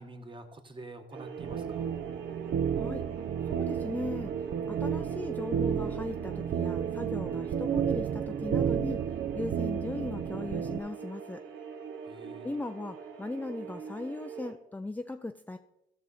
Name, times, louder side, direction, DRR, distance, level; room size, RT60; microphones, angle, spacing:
voice 1, 0.0-1.9 12.0-12.5, right 2 dB, 25° right, 6 dB, 1.3 m, -47 dB
sound 1, 1.1-14.5, right 7 dB, 75° right, 1.0 m, -41 dB
sound 2, 1.4-10.8, right 8 dB, 60° right, 0.6 m, -32 dB
voice 2, 3.5-9.0 9.3-11.4 12.4-15.6, left 2 dB, 10° left, 7 dB, 0.4 m, -38 dB
15.0 x 6.0 x 4.2 m, 0.86 s
cardioid pair, 90°, 20 cm